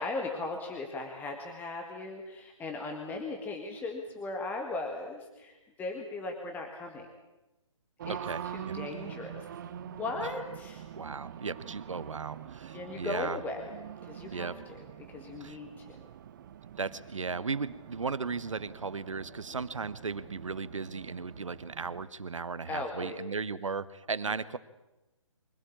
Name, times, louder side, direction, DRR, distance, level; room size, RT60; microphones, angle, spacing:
voice 1, 0.0-7.1 8.1-8.2 8.5-9.5 9.9-10.9 12.7-13.7 14.0-16.0 22.7-23.2, left 3 dB, 10° left, 2 dB, 1.8 m, -38 dB
Race car auto racing, 8.0-22.1, right 10 dB, 40° right, 0.8 m, -45 dB
voice 2, 8.1-8.8 10.9-13.4 14.3-14.6 15.4-15.6 16.8-24.6, right 4 dB, 70° right, 16 dB, 1.2 m, -36 dB
24.0 x 17.0 x 8.7 m, 1.0 s
figure-of-eight pair, 135°, 17 cm